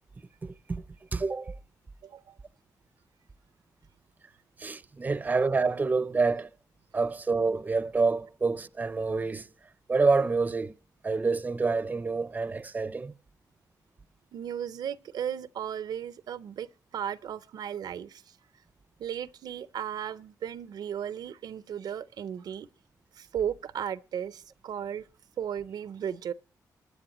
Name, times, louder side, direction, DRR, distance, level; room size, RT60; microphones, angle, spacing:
voice 1, 0.4-0.8 1.1-1.6 4.6-6.5 6.9-9.5 9.9-10.7 11.0-13.1, right 4 dB, 25° right, 0.5 m, -27 dB
voice 2, 2.0-2.4 14.3-16.7 16.9-18.4 19.0-22.7 23.2-25.0 25.4-26.3, right 9 dB, 75° right, 0.5 m, -35 dB
23.0 x 9.5 x 2.9 m
cardioid pair, 105°, 7 cm